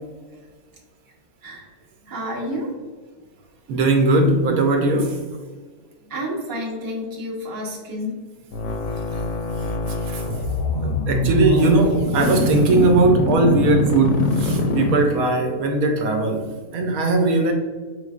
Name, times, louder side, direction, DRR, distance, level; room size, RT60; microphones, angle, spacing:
voice 1, 1.4-1.7 2.0-2.7 6.0-8.2, equal, 20° right, -2 dB, 0.6 m, -30 dB
voice 2, 3.7-5.2 10.1-10.2 10.8-17.5, right 2 dB, 70° right, 3 dB, 1.0 m, -19 dB
sound 1, 8.5-15.5, left 2 dB, 70° left, 0.9 m, -23 dB
5.0 x 3.2 x 2.4 m, 1.4 s
omnidirectional pair, 1.6 m